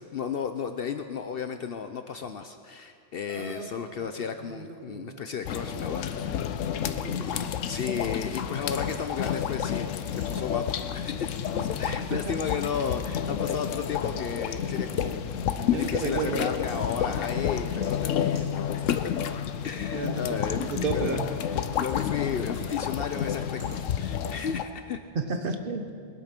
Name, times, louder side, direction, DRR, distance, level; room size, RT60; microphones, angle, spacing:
voice 1, 0.0-6.5 7.2-7.3 7.7-15.2 15.5-19.1 19.6-20.6 20.9-21.3 21.8-25.0, left 6 dB, 60° left, 7 dB, 0.7 m, -34 dB
sound 1, 3.3-3.7 4.6-4.7 5.4-5.5 6.1-6.8, right 1 dB, 25° left, 2.3 m, -47 dB
voice 2, 3.3-3.7 4.0-4.1 4.4-5.2 5.7-6.0 6.9-7.6 11.9-12.4 15.7-16.5 19.9-21.3 25.1-25.9, right 4 dB, 50° right, 7 dB, 1.1 m, -33 dB
sound 2, 5.5-24.6, left 8 dB, 90° left, 1.0 m, -30 dB
sound 3, 6.7-24.7, right 1 dB, 85° right, 3.3 m, -59 dB
21.0 x 8.5 x 5.9 m, 2.4 s
omnidirectional pair, 1.3 m